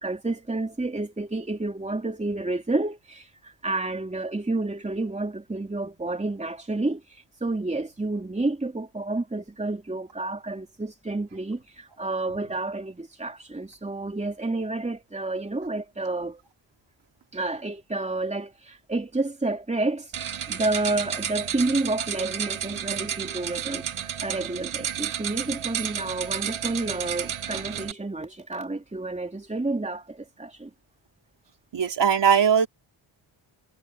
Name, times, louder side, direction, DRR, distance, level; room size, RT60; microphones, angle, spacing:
voice 1, 0.0-16.4 17.3-20.1 20.5-30.7, right 2 dB, 15° right, 3.1 m, -30 dB
sound 1, 20.1-27.9, right 9 dB, 80° right, 5.2 m, -32 dB
voice 2, 31.7-32.7, right 7 dB, 55° right, 3.3 m, -19 dB
wide cardioid pair, 140°, 49 cm